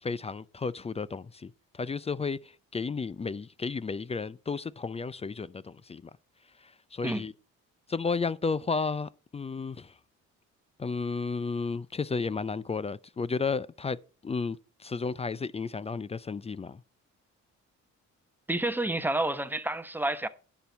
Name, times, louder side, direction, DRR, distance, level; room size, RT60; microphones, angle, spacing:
voice 1, 0.0-6.1 6.6-7.3 7.9-9.9 10.8-16.8, left 4 dB, 20° left, 0.4 m, -33 dB
voice 2, 18.5-20.3, right 1 dB, 5° right, 0.9 m, -29 dB
10.0 x 4.6 x 7.0 m
cardioid pair, 90°, 30 cm